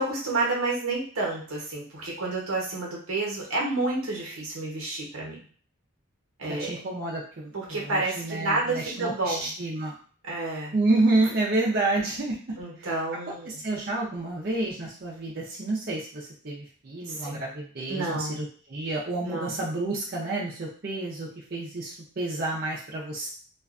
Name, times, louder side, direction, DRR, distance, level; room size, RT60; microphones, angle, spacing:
voice 1, 0.0-5.4 6.4-6.7 7.5-9.5 10.2-10.7 12.6-13.5 17.1-17.4 17.9-18.4 19.2-19.6, right 2 dB, 90° right, -3 dB, 0.9 m, -30 dB
voice 2, 6.5-9.9 10.7-12.4 12.8-13.0 13.3-23.3, right 2 dB, 45° right, -4 dB, 0.5 m, -29 dB
2.4 x 2.2 x 2.4 m, 0.43 s
head